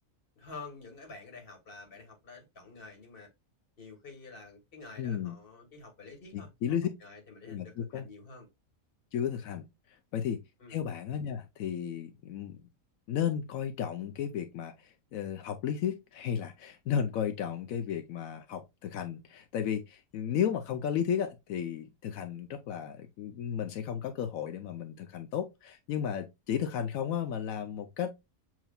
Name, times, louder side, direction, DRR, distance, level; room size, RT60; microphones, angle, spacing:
voice 1, 0.4-3.3 3.8-8.5 10.6-10.8, left 3 dB, 45° left, 1.6 m, -49 dB
voice 2, 5.0-5.3 6.3-6.9 7.5-8.1 9.1-9.7 10.1-10.4 10.7-12.6 13.1-28.2, left 8 dB, 85° left, 1.1 m, -34 dB
7.3 x 3.0 x 2.3 m
omnidirectional pair, 1.4 m